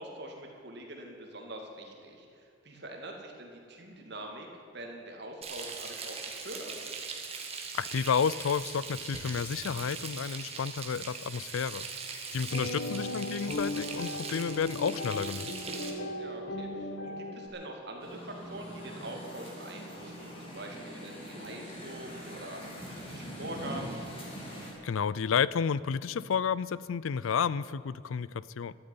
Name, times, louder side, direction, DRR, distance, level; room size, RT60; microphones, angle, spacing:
voice 1, 0.0-6.9 12.9-13.4 16.2-24.1, right 1 dB, 55° right, 1 dB, 2.4 m, -44 dB
Frying (food), 5.4-15.9, right 5 dB, 30° right, 1.6 m, -41 dB
voice 2, 7.7-11.9 12.3-15.5 24.8-28.8, left 6 dB, 85° left, 19 dB, 0.4 m, -31 dB
sound 1, 12.5-17.5, left 1 dB, 65° left, 1.4 m, -37 dB
sound 2, 18.0-24.7, equal, 30° left, 2.8 m, -43 dB
13.0 x 8.8 x 9.6 m, 2.6 s
head